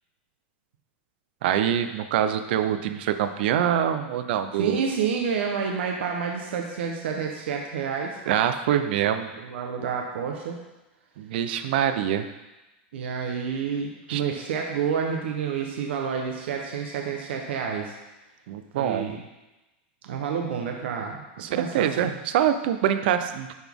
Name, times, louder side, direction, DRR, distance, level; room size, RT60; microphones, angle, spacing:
voice 1, 1.4-4.9 8.3-9.3 11.2-12.3 14.1-14.2 18.5-19.1 21.4-23.5, right 10 dB, 65° right, 9 dB, 0.6 m, -25 dB
voice 2, 4.6-8.2 9.4-10.6 12.9-17.9 18.8-19.2 20.0-21.2 21.5-22.1, right 6 dB, 85° right, 2 dB, 0.9 m, -29 dB
10.5 x 4.0 x 3.6 m, 1.0 s
supercardioid pair, 160°, 6 cm